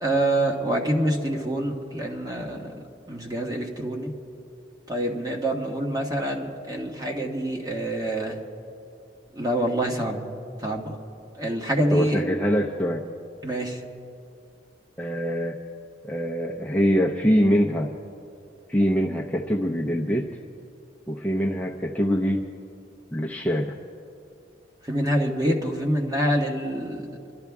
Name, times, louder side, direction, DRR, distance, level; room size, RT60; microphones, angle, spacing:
voice 1, 0.0-2.8 3.1-4.1 4.9-8.4 9.3-10.2 10.6-11.0 11.4-12.2 13.4-13.8 24.9-27.1, right 1 dB, 20° right, 1 dB, 1.4 m, -26 dB
voice 2, 11.9-13.0 15.0-15.6 16.0-17.9 18.7-20.3 21.1-22.4 23.1-23.8, equal, 10° left, -2 dB, 0.7 m, -24 dB
26.5 x 12.0 x 3.6 m, 2.6 s
head